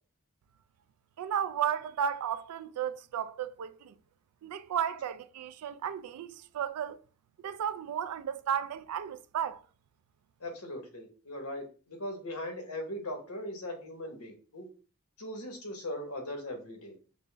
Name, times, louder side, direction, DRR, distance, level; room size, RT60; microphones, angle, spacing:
voice 1, 1.2-3.9 4.4-7.0 7.4-9.6, right 8 dB, 80° right, 0.3 m, -34 dB
voice 2, 10.4-14.7 15.2-16.9, left 1 dB, 75° left, 1.0 m, -39 dB
5.3 x 2.1 x 3.2 m
head